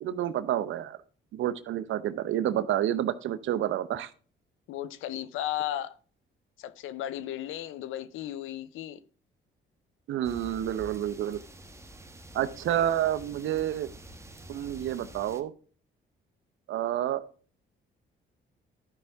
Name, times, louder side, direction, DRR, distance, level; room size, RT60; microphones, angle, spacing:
voice 1, 0.0-1.0 1.3-4.1 10.1-11.4 12.3-13.9 14.5-15.5 16.7-17.2, right 11 dB, 80° right, 0.8 m, -29 dB
voice 2, 4.7-6.0 6.6-9.0, left 12 dB, 90° left, 0.7 m, -35 dB
sound 1, 10.2-15.4, equal, 15° right, 1.3 m, -48 dB
12.5 x 5.7 x 3.5 m
cardioid pair, 90°, 20 cm